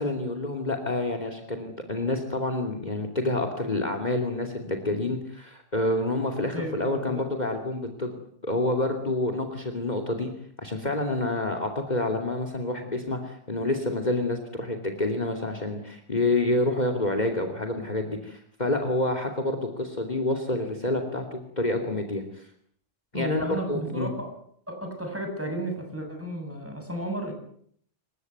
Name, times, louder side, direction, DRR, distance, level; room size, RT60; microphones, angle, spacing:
voice 1, 0.0-8.1 8.4-10.3 10.6-22.5 23.1-24.1, left 2 dB, 35° left, 6 dB, 3.0 m, -28 dB
voice 2, 6.5-7.2 23.1-24.3 24.7-27.3, right 1 dB, 10° right, 3 dB, 7.7 m, -33 dB
27.5 x 16.0 x 9.5 m, 0.64 s
omnidirectional pair, 1.2 m